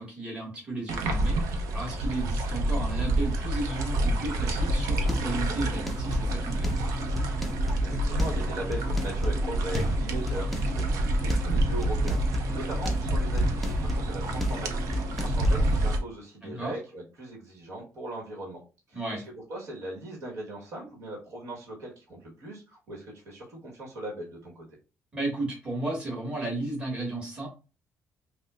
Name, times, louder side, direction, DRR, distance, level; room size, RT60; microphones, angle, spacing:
voice 1, 0.0-6.9 16.4-16.7 18.9-19.2 25.1-27.5, right 2 dB, 20° right, -3 dB, 1.7 m, -34 dB
sound 1, 0.9-16.0, right 1 dB, 85° right, 0.7 m, -28 dB
sound 2, 4.6-15.9, equal, ahead, 0.5 m, -33 dB
voice 2, 7.6-18.6 18.9-24.7, right 1 dB, 60° right, -1 dB, 1.3 m, -39 dB
5.3 x 2.2 x 2.4 m, 0.33 s
cardioid pair, 140°, 5 cm